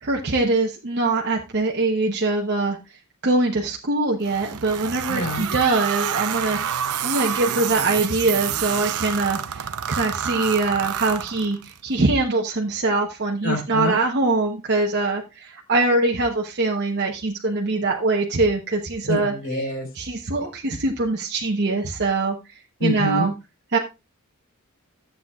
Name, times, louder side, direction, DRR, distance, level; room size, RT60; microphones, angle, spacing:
voice 1, 0.0-2.8 3.2-19.3 19.6-22.4 22.8-23.3 23.7-23.8, right 3 dB, 50° right, 0 dB, 0.9 m, -23 dB
sound 1, 4.2-11.8, right 9 dB, 85° right, 0.6 m, -28 dB
voice 2, 5.1-5.4 13.4-13.9 19.0-19.9 22.8-23.3, left 1 dB, 55° left, 2 dB, 3.3 m, -26 dB
14.0 x 7.9 x 2.3 m, 0.27 s
head